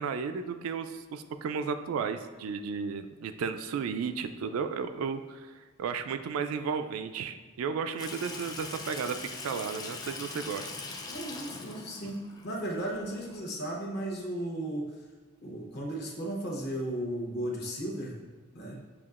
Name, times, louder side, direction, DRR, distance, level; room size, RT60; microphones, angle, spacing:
voice 1, 0.0-5.4 5.8-10.7, right 6 dB, 85° right, 10 dB, 0.3 m, -33 dB
Water tap faucet / Sink (filling or washing), 8.0-13.4, left 3 dB, 20° left, 0.3 m, -42 dB
voice 2, 11.1-14.9 15.4-18.2 18.5-18.8, right 1 dB, 50° left, -1 dB, 0.8 m, -35 dB
6.9 x 2.8 x 2.4 m, 1.4 s
head